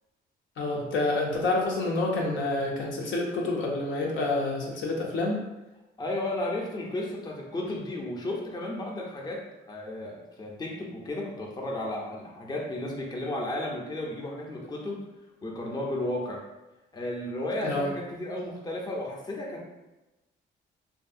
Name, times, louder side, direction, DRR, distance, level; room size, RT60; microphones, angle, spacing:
voice 1, 0.6-5.4 17.6-17.9, left 2 dB, 70° left, -2 dB, 0.7 m, -28 dB
voice 2, 6.0-15.0 15.4-16.4 16.9-19.6, left 1 dB, 20° left, -2 dB, 0.6 m, -33 dB
2.6 x 2.5 x 2.5 m, 1.0 s
cardioid pair, 90°, 20 cm